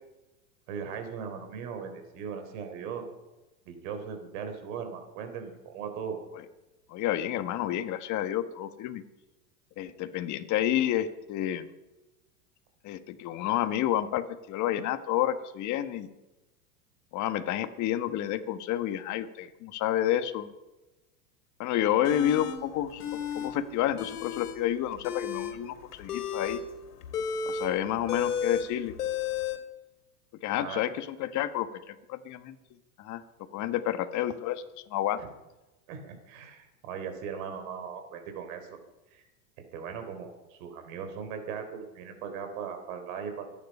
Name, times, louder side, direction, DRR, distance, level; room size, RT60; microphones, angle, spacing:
voice 1, 0.7-3.1 3.7-6.2 30.6-30.8 35.2-35.3 35.9-38.8 39.1-39.3 39.6-43.5, right 6 dB, 60° right, 7 dB, 3.9 m, -38 dB
voice 2, 6.9-9.0 9.8-11.7 12.8-16.1 17.1-20.5 21.6-26.6 27.5-28.9 30.4-32.6 33.0-33.2 33.5-35.2, left 12 dB, 40° left, 10 dB, 1.4 m, -30 dB
sound 1, 22.0-22.6 23.0-23.5 23.8-24.6 24.9-29.6, left 7 dB, 85° left, 2.8 m, -33 dB
25.5 x 10.0 x 5.5 m, 1.1 s
hypercardioid pair, 115°, 45 cm